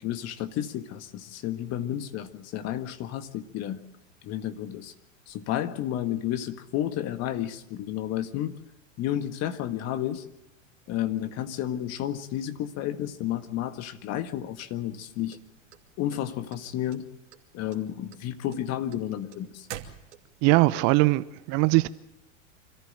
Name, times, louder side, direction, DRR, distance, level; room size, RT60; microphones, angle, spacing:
voice 1, 0.0-3.8 4.2-4.9 5.3-8.6 9.0-10.2 10.9-15.4 16.0-17.0 17.5-19.7, left 11 dB, 40° left, 1.7 m, -31 dB
sound 1, 15.3-16.6 16.9-17.4 17.7-20.5, right 11 dB, 65° right, 2.7 m, -43 dB
voice 2, 20.4-21.9, right 22 dB, 40° right, 0.7 m, -21 dB
26.0 x 14.5 x 8.9 m
hypercardioid pair, 100°, 39 cm